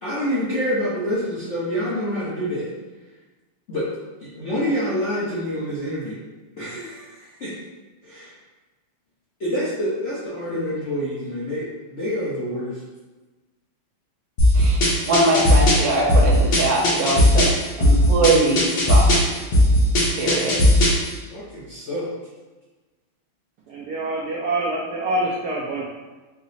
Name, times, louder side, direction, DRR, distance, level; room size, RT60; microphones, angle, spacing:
voice 1, 0.0-2.7 3.7-3.9 4.3-6.2 6.6-7.5 8.1-8.3 9.4-12.7 21.3-22.1, equal, 65° left, -9 dB, 0.7 m, -27 dB
sound 1, 14.4-21.1, left 1 dB, 85° left, 1.9 m, -17 dB
voice 2, 15.1-17.5 17.8-19.1 20.1-20.6, right 2 dB, 60° right, -3 dB, 1.1 m, -21 dB
voice 3, 23.7-25.9, right 1 dB, 90° right, -5 dB, 0.8 m, -26 dB
4.6 x 2.0 x 4.0 m, 1.2 s
omnidirectional pair, 2.3 m